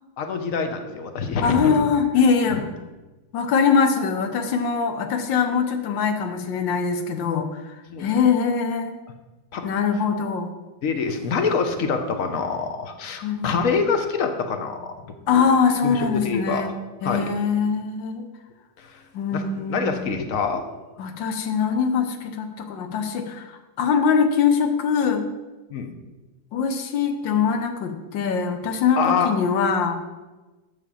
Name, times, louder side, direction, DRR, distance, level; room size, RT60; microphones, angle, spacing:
voice 1, 0.2-1.8 7.9-8.1 9.5-9.6 10.8-15.4 15.8-16.6 17.0-17.3 18.8-19.0 19.3-19.4 19.7-20.6 25.7-25.9 29.0-29.3, left 5 dB, 50° left, 6 dB, 1.1 m, -25 dB
voice 2, 1.4-2.6 3.3-7.6 8.0-9.0 9.6-10.5 13.2-13.5 15.3-16.7 17.0-18.3 19.1-20.2 21.0-25.2 26.5-30.0, left 6 dB, 70° left, 7 dB, 1.6 m, -22 dB
8.5 x 5.4 x 7.0 m, 1.2 s
omnidirectional pair, 2.1 m